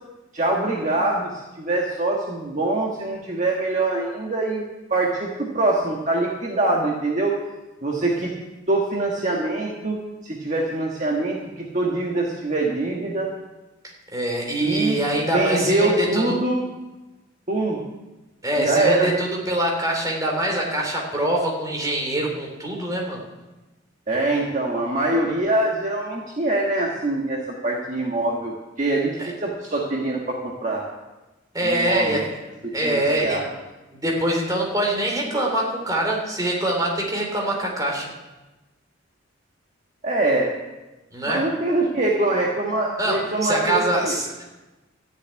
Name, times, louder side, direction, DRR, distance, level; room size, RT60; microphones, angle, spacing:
voice 1, 0.3-4.6 4.9-7.3 7.8-8.3 8.7-10.0 10.2-13.3 14.6-15.0 15.3-16.6 17.5-17.8 18.6-19.1 24.1-30.8 31.6-32.2 32.8-33.4 40.0-40.5 41.3-44.1, right 2 dB, 35° right, -2 dB, 1.5 m, -24 dB
voice 2, 14.1-16.3 18.4-23.2 29.2-29.3 31.5-32.3 32.7-33.4 33.9-38.1 41.1-41.4 43.0-44.4, right 1 dB, 15° right, -1 dB, 3.1 m, -24 dB
13.5 x 7.1 x 9.5 m, 1.1 s
head